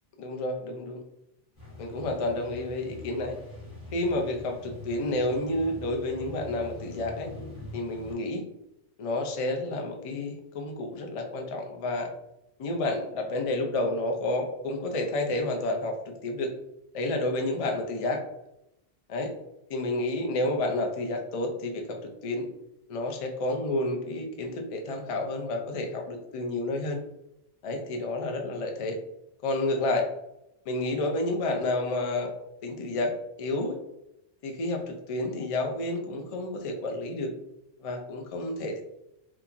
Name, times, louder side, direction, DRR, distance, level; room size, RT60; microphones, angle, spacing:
voice 1, 0.2-1.0 1.8-3.4 3.9-7.3 7.7-8.4 9.0-12.1 12.6-16.5 16.9-18.2 19.1-19.3 19.7-22.5 22.9-27.0 27.6-29.0 29.4-30.1 30.7-32.3 32.6-33.8 34.4-37.3 37.8-38.8, left 2 dB, 65° left, 2 dB, 0.3 m, -30 dB
sound 1, 1.5-8.1, left 2 dB, 20° left, 0.9 m, -44 dB
2.9 x 2.3 x 2.4 m, 0.87 s
omnidirectional pair, 1.1 m